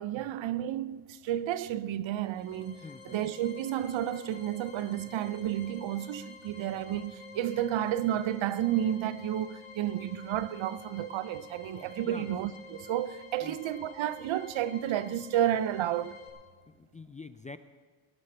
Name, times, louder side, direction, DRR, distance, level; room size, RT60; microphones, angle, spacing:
voice 1, 0.0-16.2, right 11 dB, 65° right, 0.7 m, -31 dB
sound 1, 2.1-16.3, left 4 dB, 65° left, 3.8 m, -50 dB
voice 2, 2.8-3.2 5.0-5.1 11.8-12.3 13.4-13.6 16.7-17.6, left 3 dB, 15° left, 0.3 m, -46 dB
18.0 x 6.5 x 7.9 m
cardioid pair, 95°, 49 cm